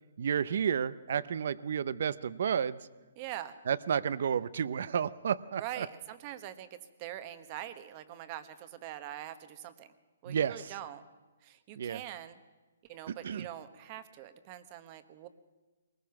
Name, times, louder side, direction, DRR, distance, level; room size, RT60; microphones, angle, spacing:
voice 1, 0.2-2.8 3.7-5.9 10.3-10.6 11.8-12.0 13.1-13.5, right 8 dB, 55° right, 18 dB, 0.6 m, -31 dB
voice 2, 3.2-3.5 5.6-9.9 10.2-11.0 11.4-12.4 12.9-15.3, right 12 dB, 30° right, 12 dB, 1.1 m, -43 dB
22.0 x 20.0 x 5.9 m, 1.2 s
hypercardioid pair, 160°, 0 cm